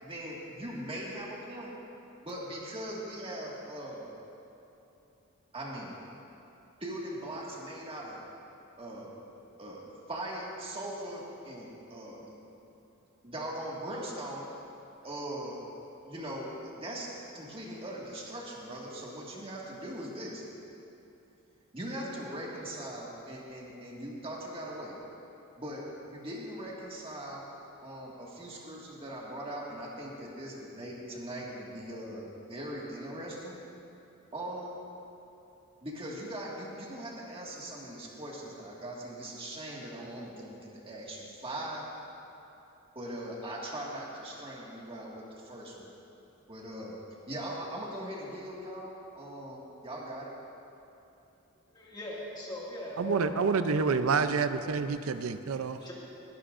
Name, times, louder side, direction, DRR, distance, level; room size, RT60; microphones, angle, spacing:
voice 1, 0.0-1.7 2.2-4.1 5.5-6.0 6.8-8.2 8.8-9.2 9.6-12.4 13.2-14.5 15.0-15.6 16.1-17.1 17.3-20.4 21.7-25.0 25.6-27.5 27.8-33.6 34.3-34.8 35.8-41.9 43.0-45.9 46.5-46.9 47.3-50.3, right 1 dB, 25° right, -4 dB, 1.9 m, -40 dB
voice 2, 51.7-53.9 54.2-54.7 55.8-55.9, left 1 dB, 20° left, -5 dB, 2.2 m, -40 dB
voice 3, 53.0-55.8, right 5 dB, 80° right, 10 dB, 0.6 m, -28 dB
21.0 x 11.5 x 2.6 m, 2.8 s
head